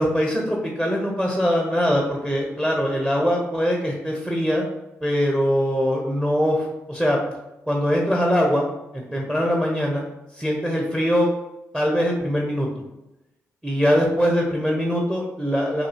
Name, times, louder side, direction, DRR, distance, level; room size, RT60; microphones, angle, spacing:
voice 1, 0.0-4.7 5.0-7.2 7.7-8.7 8.9-10.0 10.3-11.3 11.7-12.7 13.6-15.9, equal, 10° right, -1 dB, 0.8 m, -22 dB
5.2 x 2.4 x 2.8 m, 0.94 s
supercardioid pair, 55°, 6 cm